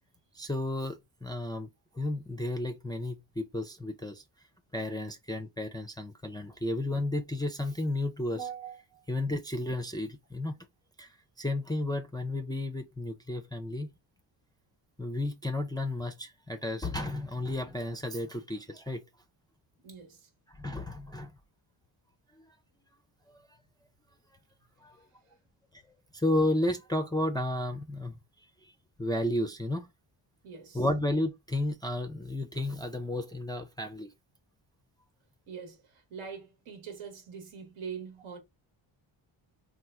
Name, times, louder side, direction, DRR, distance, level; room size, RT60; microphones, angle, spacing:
voice 1, 0.3-1.7 2.0-4.2 4.7-8.8 9.1-10.5 11.0-11.1 11.4-13.9 15.0-19.0 20.6-21.3 23.3-23.4 24.8-25.0 26.1-28.2 28.6-28.7 29.0-29.9 30.7-34.1, left 1 dB, 10° left, 0.3 m, -32 dB
voice 2, 19.8-20.3 30.4-30.8 35.5-38.4, right 6 dB, 80° right, 1.2 m, -43 dB
3.0 x 2.1 x 3.4 m
cardioid pair, 75°, 49 cm